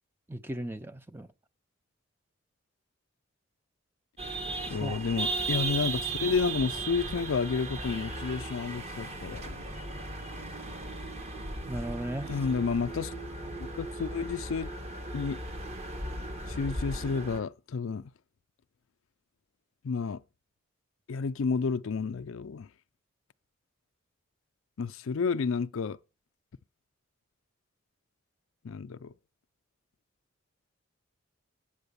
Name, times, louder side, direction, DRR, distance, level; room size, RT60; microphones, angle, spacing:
voice 1, 0.3-1.3 4.6-5.0 11.7-12.3, right 1 dB, 10° right, 0.6 m, -36 dB
sound 1, 4.2-17.4, right 2 dB, 30° right, 1.3 m, -36 dB
voice 2, 4.7-9.7 12.3-13.1 13.6-14.7 15.1-15.4 16.5-18.1 19.8-20.2 21.1-22.7 24.8-26.0 28.6-29.1, left 5 dB, 70° left, 0.4 m, -31 dB
8.7 x 7.8 x 6.9 m
head